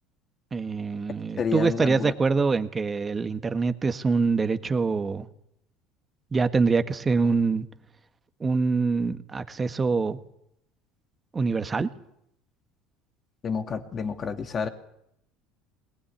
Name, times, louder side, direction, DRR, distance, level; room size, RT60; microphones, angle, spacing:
voice 1, 0.5-5.3 6.3-7.7 8.4-10.2 11.3-11.9, right 4 dB, 20° right, 10 dB, 1.5 m, -25 dB
voice 2, 1.4-2.1 13.4-14.7, left 6 dB, 35° left, 7 dB, 2.7 m, -29 dB
22.0 x 19.0 x 10.0 m, 0.76 s
supercardioid pair, 125°, 0 cm